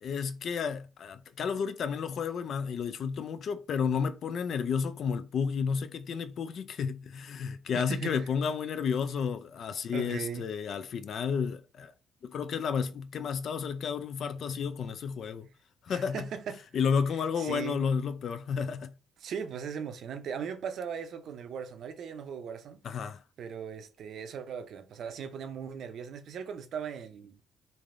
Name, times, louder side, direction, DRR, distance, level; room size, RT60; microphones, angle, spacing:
voice 1, 0.0-11.9 12.2-15.5 15.9-16.3 16.7-18.9 22.8-23.2, left 6 dB, 60° left, 0.3 m, -31 dB
voice 2, 7.7-8.3 9.9-10.4 15.9-16.6 17.4-17.8 19.2-22.8 23.4-27.4, right 7 dB, 65° right, 0.5 m, -38 dB
3.3 x 2.5 x 2.5 m
supercardioid pair, 70°, 0 cm